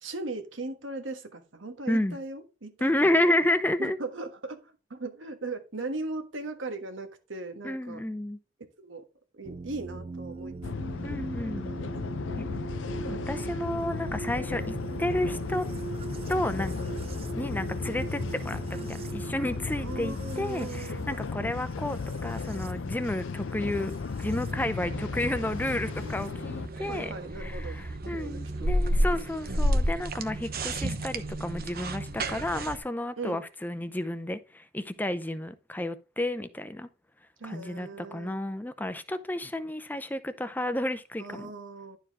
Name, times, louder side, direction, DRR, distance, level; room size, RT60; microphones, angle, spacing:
voice 1, 0.0-3.3 3.8-8.0 8.8-9.0 9.3-10.5 10.9-11.9 19.8-21.1 26.8-29.3 33.2-33.4 37.4-38.4 41.2-42.0, right 2 dB, 75° right, 1.4 m, -39 dB
voice 2, 1.9-2.2 2.8-4.0 7.6-8.4 11.0-11.7 13.0-15.6 16.3-16.8 17.3-23.9 24.2-27.1 27.4-36.9 37.4-41.5, left 1 dB, 10° left, 0.6 m, -31 dB
sound 1, 9.4-24.5 25.7-26.3, right 4 dB, 30° right, 0.3 m, -41 dB
sound 2, 10.6-26.7, left 4 dB, 70° left, 0.5 m, -35 dB
sound 3, 24.5-32.8, equal, 50° right, 0.9 m, -31 dB
11.5 x 4.7 x 3.6 m
head